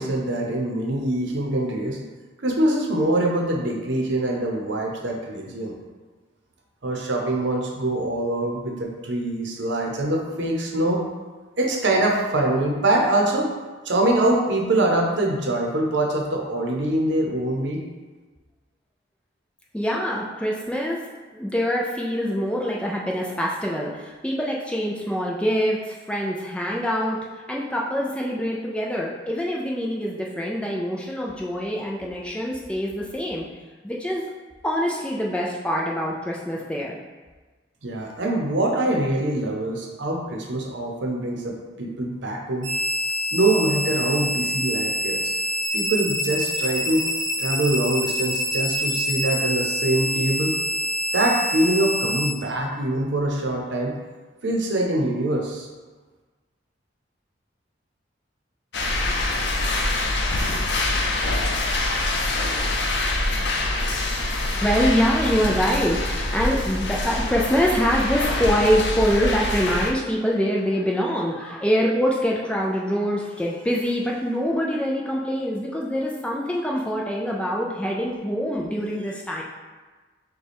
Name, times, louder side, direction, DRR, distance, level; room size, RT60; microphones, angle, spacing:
voice 1, 0.0-2.1 2.4-5.7 6.8-11.0 11.6-13.5 13.8-17.8 37.8-42.7 43.3-45.3 45.7-47.0 47.4-50.5 51.1-54.0 54.4-55.7, right 1 dB, 70° right, 0 dB, 0.8 m, -24 dB
voice 2, 19.7-21.0 21.3-33.5 33.8-34.2 34.6-37.0 64.6-79.4, equal, 5° left, -3 dB, 0.3 m, -24 dB
sound 1, 42.6-52.3, equal, 20° right, 1.3 m, -26 dB
sound 2, 58.7-69.9, left 2 dB, 65° left, 0.5 m, -25 dB
6.5 x 2.3 x 3.4 m, 1.3 s
head